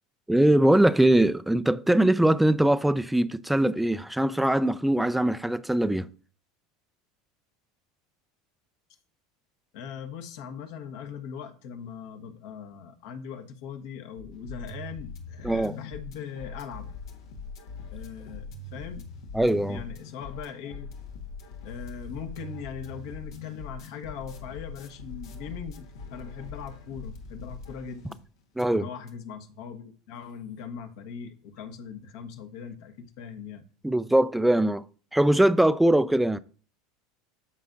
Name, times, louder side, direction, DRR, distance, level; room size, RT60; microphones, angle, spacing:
voice 1, 0.3-6.1 15.4-15.8 19.3-19.8 28.6-28.9 33.8-34.8 35.1-36.4, right 1 dB, 5° right, 0.4 m, -22 dB
voice 2, 9.7-16.9 17.9-19.1 19.7-20.9 21.6-28.2 28.7-33.6, left 7 dB, 70° left, 1.2 m, -40 dB
sound 1, 14.2-28.3 28.6-28.7 29.1-29.2, left 4 dB, 85° left, 1.4 m, -42 dB
13.0 x 5.5 x 2.6 m
hypercardioid pair, 100°, 2 cm